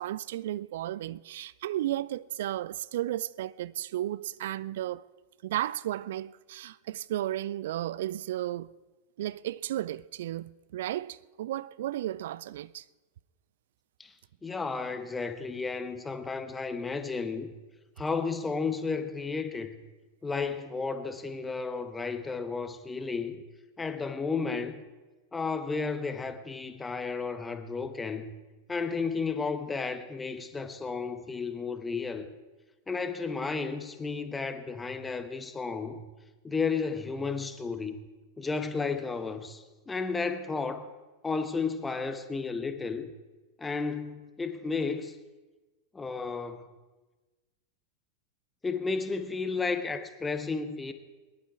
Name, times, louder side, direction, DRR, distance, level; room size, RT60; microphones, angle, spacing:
voice 1, 0.0-5.1 5.4-8.7 9.2-12.8, right 13 dB, 55° right, 0.3 m, -34 dB
voice 2, 14.4-17.5 18.0-19.8 20.2-23.4 23.8-24.8 25.3-28.3 28.7-32.3 32.9-36.0 36.4-38.0 38.4-40.9 41.2-43.1 43.6-45.2 45.9-46.7 48.6-50.9, left 4 dB, 10° left, 1.1 m, -33 dB
21.5 x 11.0 x 4.7 m
figure-of-eight pair, 90°, 0 cm